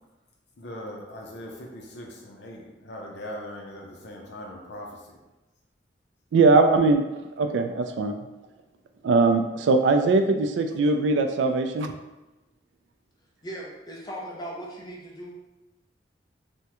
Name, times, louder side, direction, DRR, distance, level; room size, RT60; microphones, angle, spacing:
voice 1, 0.6-5.2, left 1 dB, 70° left, 0 dB, 0.6 m, -40 dB
voice 2, 6.3-7.0 7.4-8.2 9.0-11.9, right 3 dB, 85° right, 6 dB, 0.3 m, -21 dB
voice 3, 13.4-15.3, right 1 dB, 25° left, -3 dB, 0.6 m, -38 dB
3.4 x 2.1 x 2.9 m, 1.0 s
head